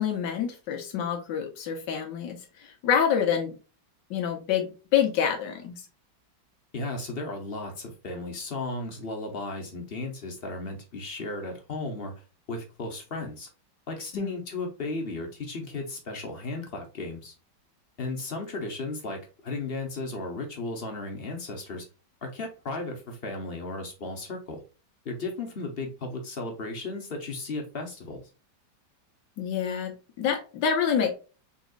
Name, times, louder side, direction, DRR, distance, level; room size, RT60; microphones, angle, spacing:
voice 1, 0.0-3.5 4.1-5.8 14.1-14.4 29.4-31.1, left 8 dB, 80° left, 1.5 m, -27 dB
voice 2, 6.7-12.1 12.5-13.5 13.9-17.3 18.0-21.9 22.2-24.6 25.0-28.2, left 2 dB, 40° left, 1.0 m, -35 dB
4.1 x 3.7 x 2.4 m
omnidirectional pair, 1.9 m